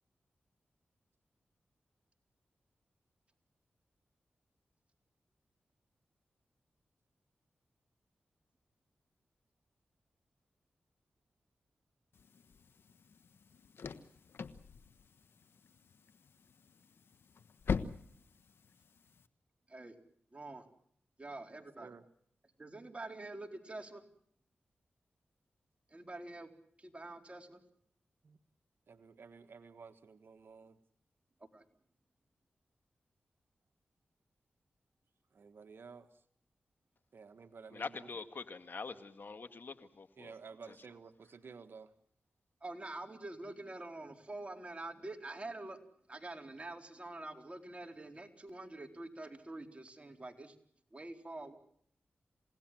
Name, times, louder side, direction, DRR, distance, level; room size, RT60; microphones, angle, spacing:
sound 1, 12.1-19.3, left 5 dB, 80° left, 1.2 m, -44 dB
voice 1, 20.3-20.6 21.2-21.9 22.6-24.0 25.9-26.5 26.8-27.6 31.5-31.6 42.6-45.8 46.1-50.5 50.9-51.6, right 2 dB, 30° right, 4 dB, 4.3 m, -46 dB
voice 2, 28.9-30.8 35.3-36.1 37.1-38.0 40.2-41.9, right 5 dB, 70° right, 9 dB, 1.4 m, -53 dB
voice 3, 37.7-40.3 40.7-40.8, left 4 dB, 60° left, 10 dB, 1.8 m, -44 dB
29.0 x 17.5 x 7.7 m, 0.66 s
cardioid pair, 50°, 4 cm